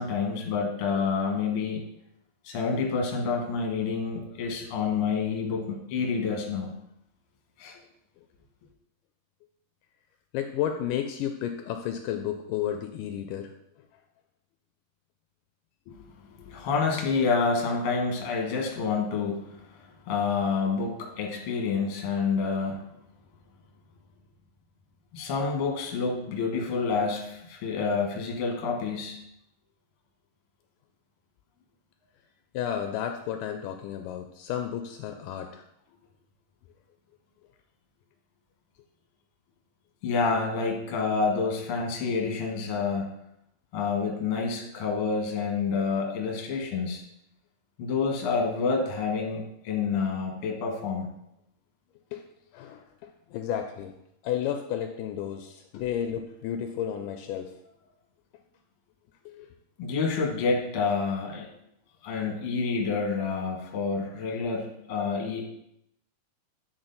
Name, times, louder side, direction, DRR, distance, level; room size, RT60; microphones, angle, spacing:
voice 1, 0.0-1.8 2.4-6.7 7.6-7.8 15.9-16.0 16.4-19.6 20.1-22.8 25.1-29.2 40.0-43.1 43.7-47.0 47.8-51.1 59.8-61.5 62.0-65.5, left 5 dB, 55° left, 1 dB, 1.7 m, -28 dB
voice 2, 10.3-13.5 32.5-35.6 52.1-52.2 52.5-53.9 54.2-57.5 59.3-59.5, left 10 dB, 80° left, 6 dB, 2.0 m, -32 dB
8.8 x 4.2 x 3.9 m, 0.79 s
omnidirectional pair, 3.9 m